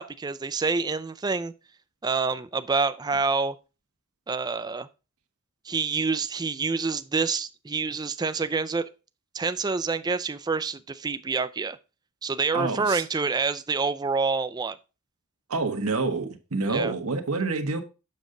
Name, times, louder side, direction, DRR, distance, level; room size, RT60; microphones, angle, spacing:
voice 1, 0.0-1.5 2.0-3.6 4.3-4.9 5.7-8.9 9.3-11.8 12.2-14.8 16.7-16.9, right 4 dB, 20° right, 0.4 m, -27 dB
voice 2, 12.5-13.0 15.5-17.8, right 3 dB, 85° right, 1.2 m, -27 dB
7.2 x 6.6 x 3.8 m
head